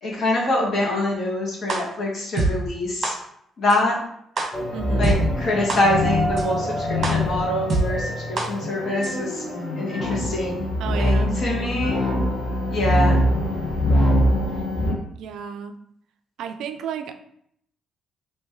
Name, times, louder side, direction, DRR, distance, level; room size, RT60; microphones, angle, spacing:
voice 1, 0.0-3.1 3.6-4.0 5.0-9.4 9.8-10.7 11.0-12.0 12.7-13.2, left 1 dB, 55° left, -4 dB, 1.5 m, -24 dB
sound 1, 1.7-1.8 2.4-2.5 3.0-3.1 3.7-3.8 4.4-4.5 5.0-5.1 5.7-5.8 6.4-6.5 7.0-7.1 7.7-7.8 8.4-8.5 9.0-9.1, right 3 dB, 50° right, 1.0 m, -23 dB
sound 2, 4.5-14.9, left 1 dB, 30° left, 1.2 m, -23 dB
voice 2, 4.7-5.2 10.8-12.4 15.2-15.8 16.4-17.1, right 7 dB, 80° right, 9 dB, 0.3 m, -33 dB
3.1 x 3.0 x 3.5 m, 0.69 s
cardioid pair, 90°, 0 cm